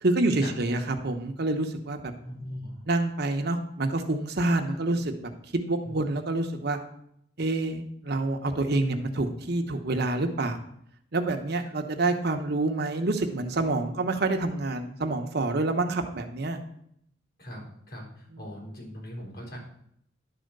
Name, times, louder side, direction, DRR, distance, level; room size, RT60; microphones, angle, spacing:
voice 1, 0.0-2.1 2.9-6.8 7.4-10.6 11.1-16.6 18.3-18.5, right 2 dB, 60° right, 5 dB, 1.0 m, -27 dB
voice 2, 2.2-2.8 4.7-4.8 5.8-6.0 17.4-19.6, equal, 55° left, -3 dB, 4.3 m, -40 dB
11.5 x 4.3 x 6.6 m, 0.72 s
head